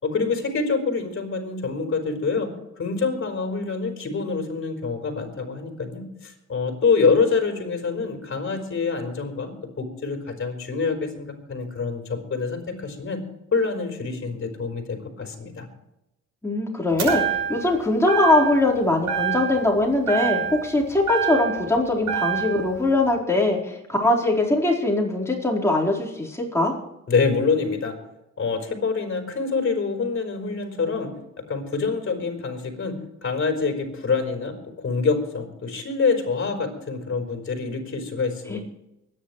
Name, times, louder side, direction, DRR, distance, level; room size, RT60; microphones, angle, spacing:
voice 1, 0.0-2.5 2.7-13.2 13.5-15.7 27.1-28.0 28.4-33.0 33.2-38.6, left 4 dB, 45° left, 4 dB, 4.3 m, -26 dB
voice 2, 16.4-17.2 17.5-26.7 38.5-38.6, left 2 dB, 10° left, -3 dB, 4.4 m, -21 dB
sound 1, 17.0-17.7 18.1-18.7 19.1-19.8 20.1-21.7 22.1-22.7, right 8 dB, 85° right, 6.1 m, -26 dB
24.0 x 10.0 x 3.2 m, 0.90 s
cardioid pair, 90°, 30 cm